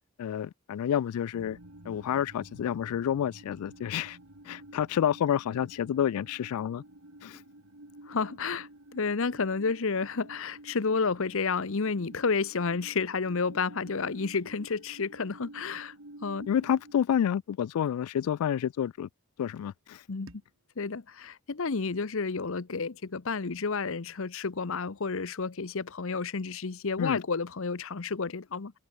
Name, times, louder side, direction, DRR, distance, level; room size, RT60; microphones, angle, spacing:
voice 1, 0.2-1.6 1.9-4.2 4.4-6.8 7.2-7.4 16.5-19.1 19.4-20.1 27.0-27.2, left 9 dB, 80° left, 0.3 m, -29 dB
sound 1, 1.3-16.9, right 1 dB, 80° right, 3.8 m, -51 dB
voice 2, 8.1-15.9 16.2-16.5 20.1-20.3 20.8-28.7, left 4 dB, 60° left, 0.8 m, -31 dB
sound 2, 20.2-23.2, right 1 dB, 60° right, 4.7 m, -60 dB
open air
head